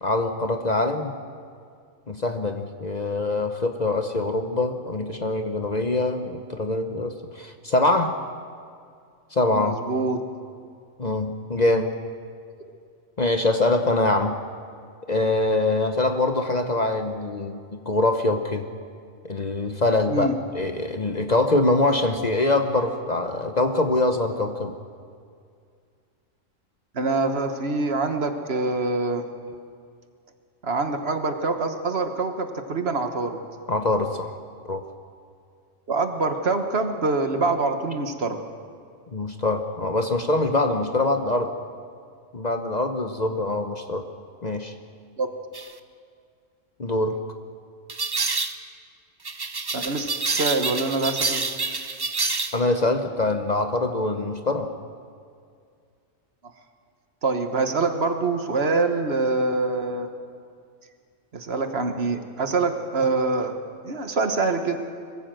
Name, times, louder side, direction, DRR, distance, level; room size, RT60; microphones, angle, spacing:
voice 1, 0.0-1.1 2.1-8.2 9.3-9.8 11.0-11.9 13.2-14.3 15.1-18.7 19.3-24.7 33.7-34.3 34.6-34.8 39.1-41.5 42.3-44.1 44.4-44.7 46.8-47.2 52.5-54.7, left 2 dB, 40° left, 6 dB, 0.9 m, -24 dB
voice 2, 9.5-10.2 20.1-20.3 26.9-29.3 30.6-33.4 35.9-38.4 45.2-45.3 49.7-51.5 57.2-60.1 61.3-63.5 63.8-64.8, right 3 dB, 55° right, 7 dB, 1.4 m, -25 dB
sound 1, 45.5-45.7 47.9-48.6 49.2-52.6, right 3 dB, 25° right, 0.6 m, -27 dB
22.0 x 15.5 x 7.7 m, 2.3 s
omnidirectional pair, 1.3 m